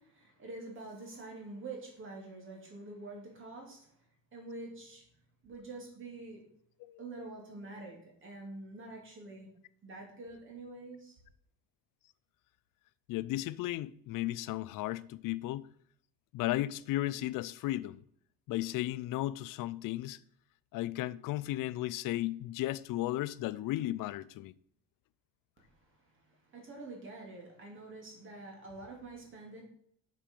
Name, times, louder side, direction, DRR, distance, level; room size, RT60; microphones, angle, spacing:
voice 1, 0.0-3.9 4.3-5.0 5.4-6.4 7.0-9.5 9.8-11.2 25.6-29.6, right 2 dB, 25° right, 2.7 m, -46 dB
voice 2, 13.1-15.7 16.3-18.0 18.5-20.2 20.7-24.5, left 15 dB, 50° left, 0.4 m, -35 dB
7.4 x 6.9 x 5.3 m
cardioid pair, 180°, 44 cm